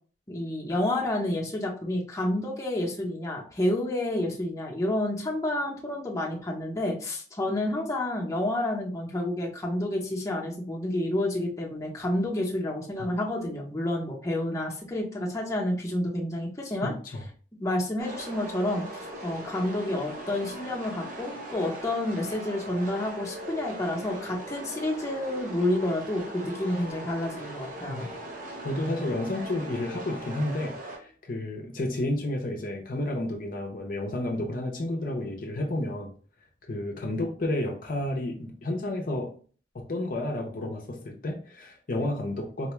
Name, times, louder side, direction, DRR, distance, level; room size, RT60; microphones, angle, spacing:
voice 1, 0.3-16.9 17.6-18.8 19.2-28.1, left 1 dB, 20° left, -2 dB, 0.8 m, -29 dB
voice 2, 16.8-17.2 27.9-28.1 28.6-36.1 36.7-39.3 39.7-42.7, left 1 dB, 50° left, 2 dB, 0.6 m, -31 dB
sound 1, 18.0-31.0, right 1 dB, 50° right, 0.8 m, -40 dB
4.2 x 2.2 x 3.0 m, 0.41 s
head